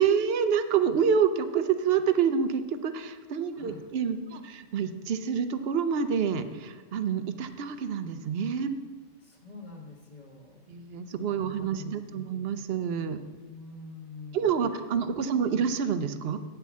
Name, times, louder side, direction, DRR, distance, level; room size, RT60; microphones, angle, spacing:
voice 1, 0.0-8.8 10.7-13.2 14.3-16.4, right 7 dB, 55° right, 10 dB, 0.7 m, -27 dB
voice 2, 3.5-3.8 9.2-10.6 11.3-12.5 13.4-14.6, left 4 dB, 30° left, -5 dB, 1.2 m, -46 dB
8.9 x 5.9 x 7.1 m, 1.3 s
omnidirectional pair, 1.5 m